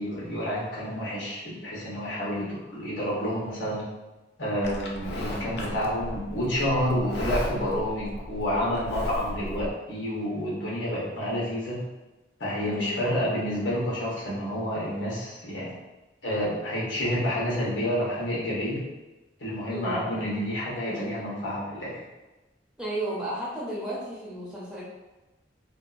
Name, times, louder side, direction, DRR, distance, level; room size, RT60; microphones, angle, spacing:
voice 1, 0.0-3.8 4.4-11.8 12.4-15.7 16.2-18.8 19.4-22.0, equal, 85° left, -7 dB, 0.9 m, -29 dB
voice 2, 2.2-2.6 12.6-13.0 19.7-20.3 22.8-24.8, right 1 dB, 5° right, -7 dB, 0.6 m, -34 dB
Livestock farm animals working animals, 4.6-9.7, left 1 dB, 60° left, 0.4 m, -35 dB
2.6 x 2.3 x 2.4 m, 1.1 s
head